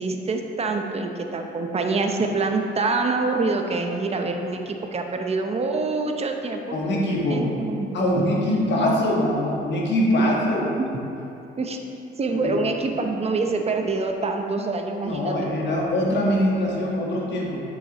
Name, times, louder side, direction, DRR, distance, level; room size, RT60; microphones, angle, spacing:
voice 1, 0.0-6.8 7.3-7.9 8.2-8.3 10.2-10.3 10.8-10.9 11.6-11.8 12.2-15.3, right 3 dB, 30° right, 4 dB, 0.7 m, -25 dB
voice 2, 6.7-7.5 7.9-10.7 12.4-12.6 15.0-17.6, left 1 dB, 65° left, -3 dB, 1.4 m, -23 dB
8.2 x 6.2 x 3.0 m, 2.8 s
cardioid pair, 90°, 20 cm